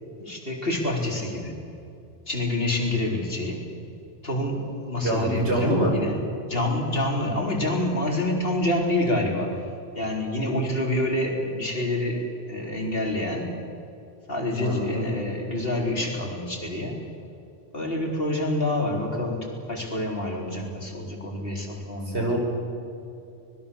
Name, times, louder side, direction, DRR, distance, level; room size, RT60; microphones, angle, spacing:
voice 1, 0.2-1.5 2.3-3.7 4.2-6.1 6.5-9.5 9.9-13.6 14.3-17.0 17.7-22.3, left 1 dB, 50° left, 1 dB, 4.3 m, -27 dB
voice 2, 5.0-5.9 14.6-15.1 22.1-22.4, right 1 dB, 60° right, 0 dB, 5.8 m, -24 dB
25.0 x 21.0 x 7.1 m, 2.8 s
omnidirectional pair, 1.3 m